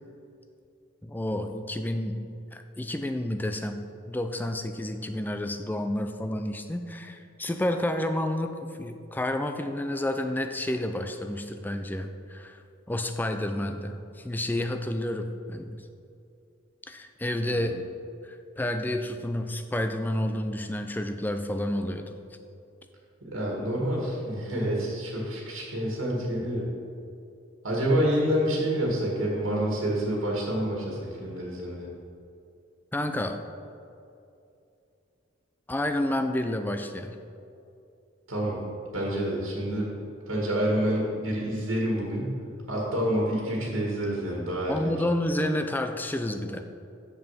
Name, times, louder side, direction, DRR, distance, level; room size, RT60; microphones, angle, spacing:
voice 1, 1.0-2.2 2.5-8.5 8.8-12.6 12.9-15.8 16.9-17.8 18.2-22.2 32.9-33.4 35.7-37.2 44.7-46.6, left 1 dB, 10° left, 7 dB, 0.4 m, -30 dB
voice 2, 23.2-26.7 27.6-31.9 38.3-38.6 38.9-39.9 40.3-42.4 42.7-45.0, equal, 75° right, -3 dB, 1.9 m, -28 dB
6.9 x 6.5 x 5.8 m, 2.6 s
head